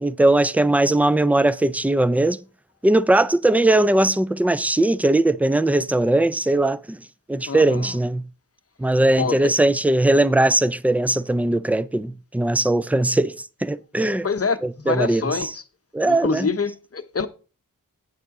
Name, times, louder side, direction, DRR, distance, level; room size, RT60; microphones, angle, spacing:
voice 1, 0.0-2.4 2.8-7.0 7.3-8.2 8.8-13.4 13.6-14.3 14.9-15.5 15.9-16.5, right 1 dB, 5° right, 0.4 m, -19 dB
voice 2, 7.5-8.0 9.2-9.5 14.2-15.6 16.0-17.3, left 5 dB, 45° left, 0.8 m, -26 dB
9.4 x 7.4 x 3.7 m
wide cardioid pair, 80°, 34 cm